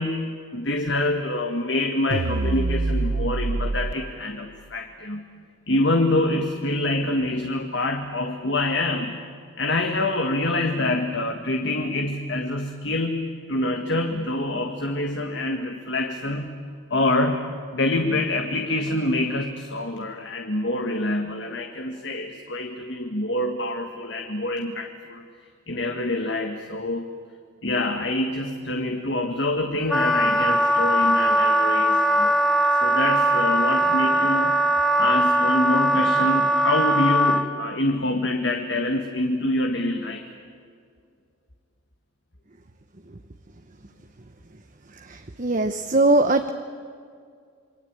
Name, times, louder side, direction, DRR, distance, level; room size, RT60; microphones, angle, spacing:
voice 1, 0.0-5.2 5.7-9.2 9.6-16.6 16.9-25.2 25.7-27.1 27.6-32.4 32.8-34.6 35.0-40.2, left 1 dB, 60° left, 4 dB, 1.7 m, -26 dB
sound 1, 2.1-3.9, right 2 dB, 65° right, 0.7 m, -25 dB
Wind instrument woodwind instrument, 29.9-37.5, right 1 dB, ahead, 1.1 m, -20 dB
voice 2, 45.1-46.5, right 2 dB, 40° right, 8 dB, 0.9 m, -21 dB
28.0 x 23.5 x 8.9 m, 2.2 s
head